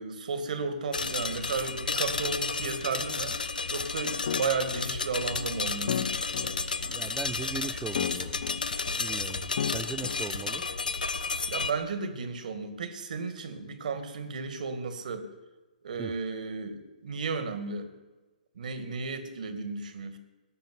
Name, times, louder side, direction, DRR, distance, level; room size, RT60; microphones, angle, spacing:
voice 1, 0.0-3.4 3.7-6.5 11.5-15.3 15.8-17.9 18.6-20.2, right 4 dB, 65° right, 9 dB, 2.3 m, -34 dB
sound 1, 0.9-11.7, left 4 dB, 80° left, 1.1 m, -32 dB
sound 2, 4.3-11.0, left 8 dB, 65° left, 0.4 m, -36 dB
voice 2, 6.9-8.4 9.0-10.7 16.0-16.1, right 6 dB, 10° right, 12 dB, 0.4 m, -39 dB
18.0 x 7.1 x 9.6 m, 1.1 s
hypercardioid pair, 130°, 5 cm